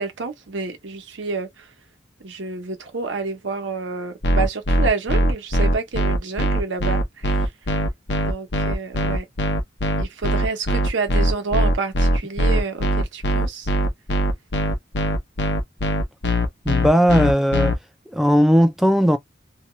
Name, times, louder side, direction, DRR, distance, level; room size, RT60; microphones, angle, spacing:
voice 1, 0.0-1.7 2.2-7.5 8.2-9.2 10.0-13.7, right 4 dB, 80° right, 0.8 m, -29 dB
sound 1, 4.2-17.7, equal, 60° left, 0.7 m, -20 dB
voice 2, 16.7-17.7 18.1-19.2, equal, ahead, 0.3 m, -17 dB
2.7 x 2.3 x 3.0 m
head